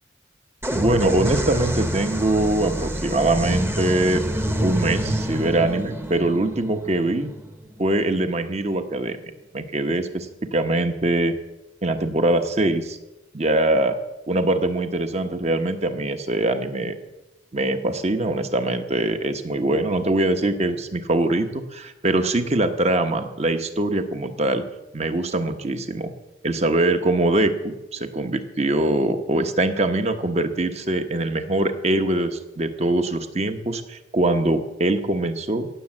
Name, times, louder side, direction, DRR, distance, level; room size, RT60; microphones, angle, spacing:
sound 1, 0.6-8.2, equal, 15° right, 1.0 m, -27 dB
voice 1, 0.7-4.2 4.6-7.3 7.8-9.2 9.5-11.3 11.8-13.0 13.3-14.0 14.3-16.9 17.5-24.6 24.9-26.1 26.4-35.7, right 2 dB, 40° right, 7 dB, 1.1 m, -23 dB
17.5 x 7.1 x 7.7 m, 1.0 s
head